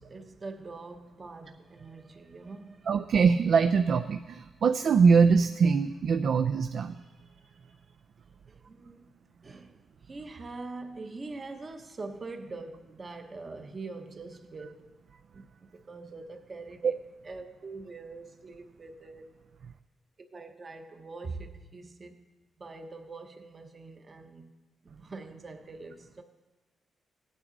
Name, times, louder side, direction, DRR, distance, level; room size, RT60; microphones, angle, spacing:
voice 1, 0.0-2.9 8.5-9.1 9.4-14.9 15.3-16.9 17.2-19.3 20.2-22.2 22.6-24.5 24.8-26.2, right 3 dB, 30° right, 0.9 m, -43 dB
voice 2, 2.9-6.9 16.8-16.9, right 5 dB, 55° right, 0.4 m, -23 dB
16.5 x 9.1 x 3.9 m
cardioid pair, 140°, 0 cm